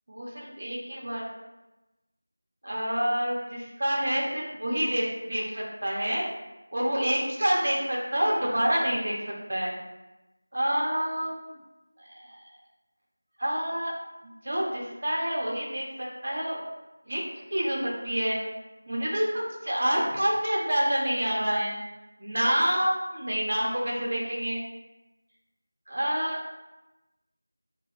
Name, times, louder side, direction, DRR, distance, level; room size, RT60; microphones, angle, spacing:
voice 1, 0.1-1.3 2.6-6.2 6.7-9.7 10.5-11.5 12.0-12.4 13.4-13.9 14.4-16.6 17.1-17.2 17.5-18.4 18.9-21.8 22.2-24.6 25.9-26.4, equal, 50° right, -3 dB, 0.6 m, -28 dB
2.8 x 2.0 x 2.4 m, 1.0 s
figure-of-eight pair, 175°, 0 cm